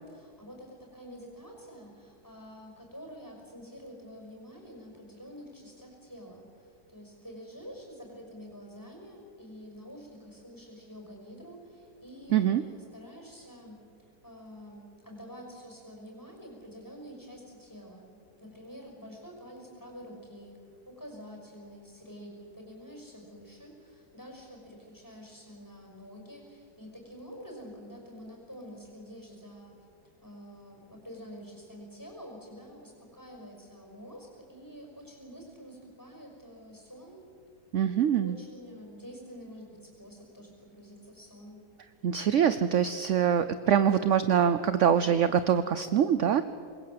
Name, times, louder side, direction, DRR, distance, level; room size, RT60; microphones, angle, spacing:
voice 1, 0.1-13.8 14.2-20.6 20.8-29.8 30.2-37.2 38.1-41.6, equal, 10° left, 1 dB, 5.8 m, -48 dB
voice 2, 12.3-12.6 37.7-38.4 42.0-46.4, right 8 dB, 60° right, 12 dB, 0.9 m, -24 dB
26.5 x 21.5 x 7.8 m, 2.4 s
omnidirectional pair, 1.8 m